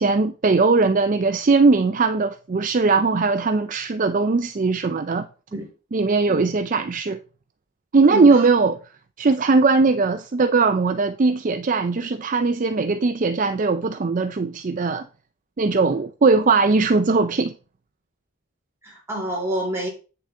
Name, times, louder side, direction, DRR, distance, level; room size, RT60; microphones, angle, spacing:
voice 1, 0.0-5.3 5.9-7.2 7.9-8.8 9.2-15.0 15.6-17.5, right 4 dB, 40° right, 0.4 m, -19 dB
voice 2, 8.0-8.5 18.8-19.9, right 1 dB, 15° right, 3.1 m, -28 dB
8.8 x 6.8 x 3.7 m
head